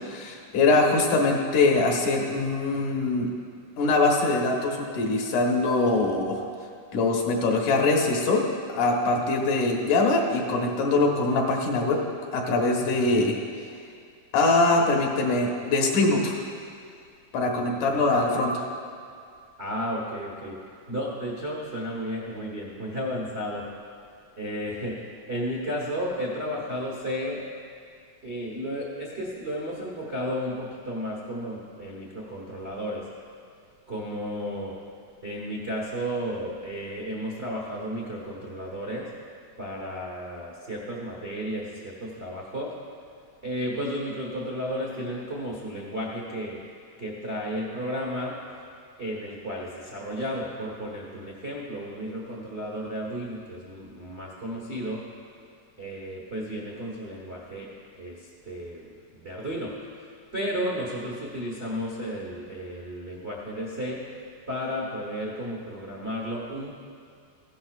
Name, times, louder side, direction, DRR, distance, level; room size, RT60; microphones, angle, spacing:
voice 1, 0.1-3.3 3.8-6.4 6.9-8.4 8.7-12.0 12.3-13.4 14.3-16.4 17.3-18.6, left 3 dB, 80° left, 0 dB, 2.7 m, -23 dB
voice 2, 17.7-18.2 19.6-20.6 20.9-23.7 24.4-27.4 28.2-33.0 33.9-34.7 35.2-39.1 39.6-42.7 43.4-46.6 47.0-48.4 49.0-55.0 55.8-57.7 58.0-60.1 60.3-64.0 64.5-66.7, equal, 50° right, -3 dB, 0.7 m, -33 dB
15.5 x 11.5 x 2.4 m, 2.3 s
omnidirectional pair, 3.6 m